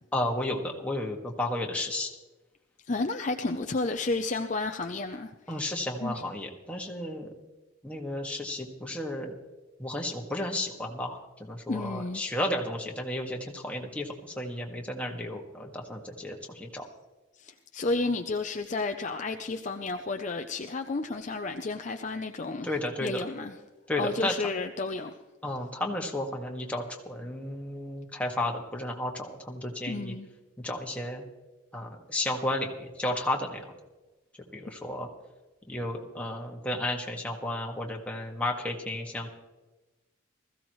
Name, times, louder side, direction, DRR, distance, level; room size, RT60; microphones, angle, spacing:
voice 1, 0.1-2.1 5.5-7.3 7.8-9.4 9.8-14.1 14.4-16.8 22.6-23.2 23.9-24.3 25.4-30.2 30.6-31.2 31.7-33.7 34.5-35.1 35.7-39.4, left 1 dB, 5° left, 1.8 m, -33 dB
voice 2, 2.9-5.7 6.0-6.2 11.7-12.2 17.3-22.7 23.0-23.6 24.0-25.2 29.9-30.3, left 3 dB, 35° left, 0.6 m, -32 dB
20.0 x 15.0 x 3.2 m
head